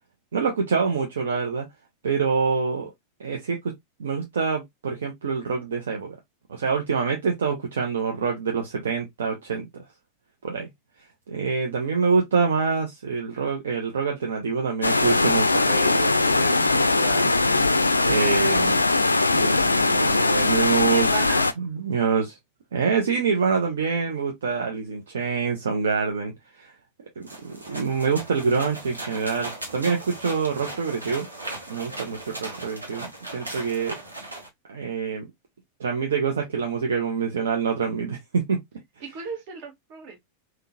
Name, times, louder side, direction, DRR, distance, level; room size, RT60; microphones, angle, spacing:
voice 1, 0.3-1.7 2.0-2.9 3.2-3.6 4.0-6.2 6.5-9.8 10.4-10.7 11.3-17.3 18.0-18.8 19.3-21.2 21.6-22.4 22.7-26.3 26.6-26.7 27.4-31.3 31.7-34.0 34.7-35.3 35.8-38.6, right 5 dB, 65° right, 0.7 m, -26 dB
sound 1, 14.8-21.5, left 3 dB, 80° left, 0.3 m, -21 dB
voice 2, 20.9-21.5 39.0-40.2, right 5 dB, 45° right, 1.4 m, -36 dB
sound 2, 27.2-34.5, right 2 dB, 80° right, 1.0 m, -38 dB
3.6 x 2.3 x 2.6 m
figure-of-eight pair, 90°, 0 cm